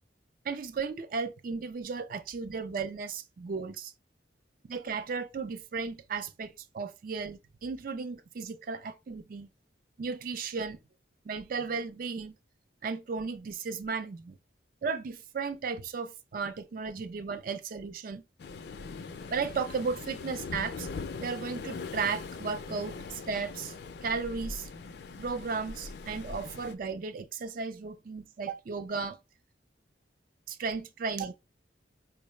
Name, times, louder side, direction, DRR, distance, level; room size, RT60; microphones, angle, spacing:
voice 1, 0.4-3.9 4.6-9.5 10.0-10.8 11.3-12.3 12.8-14.4 14.8-18.2 19.3-20.9 21.2-23.7 24.0-24.7 25.2-29.2 30.5-31.3, right 5 dB, 50° right, 0.4 m, -35 dB
Waves surf, 18.4-26.7, left 4 dB, 60° left, 0.4 m, -41 dB
4.6 x 2.0 x 3.1 m
head